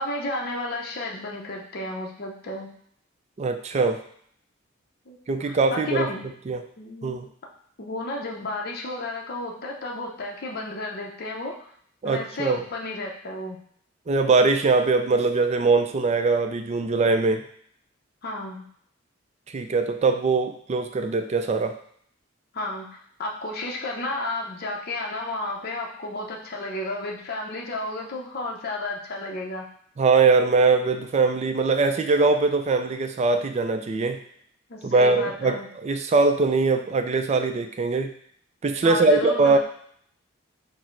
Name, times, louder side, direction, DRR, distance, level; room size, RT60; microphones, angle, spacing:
voice 1, 0.0-2.7 5.1-5.2 5.5-6.2 6.8-7.2 7.8-11.5 12.0-13.6 18.2-18.6 22.5-29.6 34.7-35.7 38.8-39.6, left 2 dB, 50° left, -1 dB, 0.6 m, -32 dB
voice 2, 3.4-4.0 5.3-6.1 6.5-6.6 7.0-7.3 12.0-12.6 14.1-17.4 19.5-21.8 30.0-34.2 34.8-38.1 38.6-39.6, right 3 dB, 35° right, 7 dB, 0.3 m, -22 dB
4.6 x 2.0 x 4.4 m, 0.64 s
head